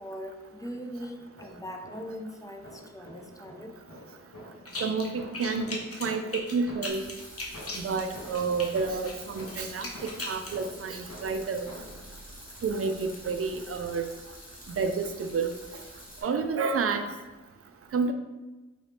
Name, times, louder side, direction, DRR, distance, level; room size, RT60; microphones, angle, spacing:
voice 1, 0.0-3.8, equal, 10° left, 3 dB, 0.4 m, -40 dB
sound 1, 1.2-2.3 2.6-7.1 7.5-12.1, equal, 70° left, 1.1 m, -47 dB
sound 2, 4.7-5.1 5.3-8.7 9.1-10.6, left 2 dB, 50° left, 0.7 m, -38 dB
voice 2, 4.8-7.0 7.7-9.9 10.3-11.7 12.6-14.0 14.8-15.5 16.2-17.0 17.9-18.1, right 4 dB, 50° right, 7 dB, 0.4 m, -29 dB
sound 3, 6.9-16.2, left 1 dB, 30° left, 1.0 m, -48 dB
3.0 x 2.6 x 3.3 m, 1.2 s
cardioid pair, 50°, 30 cm